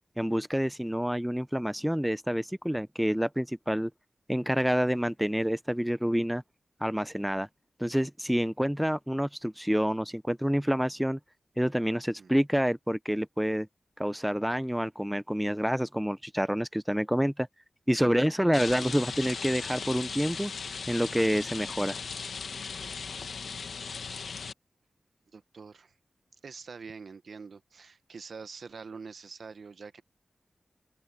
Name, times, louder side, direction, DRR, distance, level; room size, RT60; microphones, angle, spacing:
voice 1, 0.2-3.9 4.3-6.4 6.8-7.5 7.8-11.2 11.6-13.7 14.0-17.5 17.9-20.5 20.9-22.0, equal, 5° right, 0.4 m, -28 dB
Rain, 18.5-24.5, left 5 dB, 85° left, 1.2 m, -37 dB
voice 2, 25.3-25.9 26.4-30.0, right 5 dB, 75° right, 0.9 m, -45 dB
open air
wide cardioid pair, 110°, 0 cm